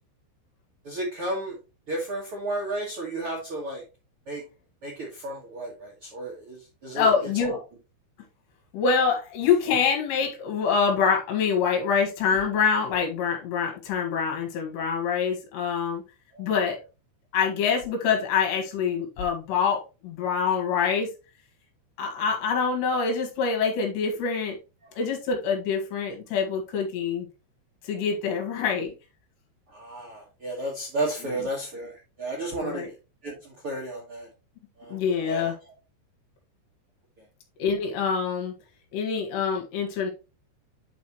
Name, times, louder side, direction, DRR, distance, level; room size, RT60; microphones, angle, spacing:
voice 1, 0.8-1.6 1.9-3.8 4.3-4.4 4.8-7.1 7.4-7.6 16.3-16.5 24.8-24.9 29.7-32.9 33.2-34.3 34.8-35.0 35.2-35.7 37.2-37.3, right 1 dB, 80° right, -2 dB, 1.2 m, -33 dB
voice 2, 6.9-7.6 8.7-16.0 16.4-16.8 17.3-21.1 22.0-24.6 25.0-27.3 27.8-28.9 32.6-32.9 34.9-35.5 37.6-38.5 38.9-40.1, left 6 dB, 75° left, 2 dB, 3.8 m, -25 dB
9.4 x 4.9 x 3.0 m, 0.30 s
omnidirectional pair, 5.2 m